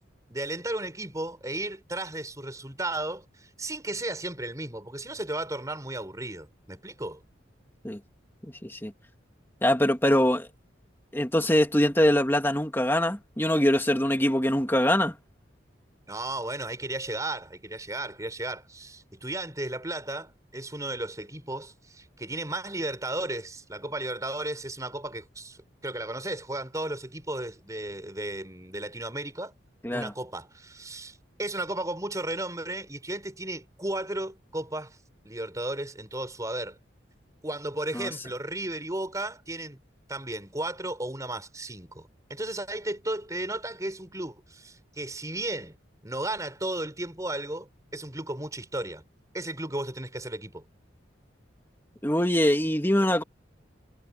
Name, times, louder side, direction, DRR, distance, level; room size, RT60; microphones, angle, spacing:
voice 1, 0.3-7.2 16.1-29.5 29.9-35.0 35.2-36.8 37.4-39.8 40.1-45.8 46.0-49.0 49.3-50.6, right 1 dB, 15° right, 5.0 m, -34 dB
voice 2, 8.4-8.9 9.6-10.5 11.1-15.2 29.8-30.1 37.9-38.1 52.0-53.2, left 1 dB, 10° left, 2.6 m, -23 dB
head